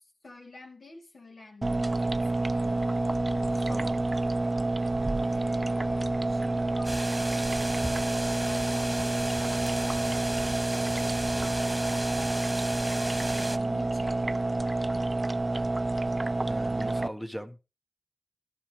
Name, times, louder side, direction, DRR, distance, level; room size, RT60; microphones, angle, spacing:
voice 1, 0.0-1.9 2.2-2.9 3.3-3.8 5.2-7.7 8.4-10.4 11.4-12.5 12.8-14.3, left 3 dB, 60° left, 3.4 m, -49 dB
sound 1, 1.6-17.1, right 2 dB, 35° right, 0.6 m, -28 dB
voice 2, 3.7-4.0 16.5-17.6, equal, 5° left, 1.2 m, -39 dB
sound 2, 6.8-13.6, right 1 dB, 10° right, 1.8 m, -36 dB
12.0 x 11.5 x 3.4 m
cardioid pair, 40°, 0 cm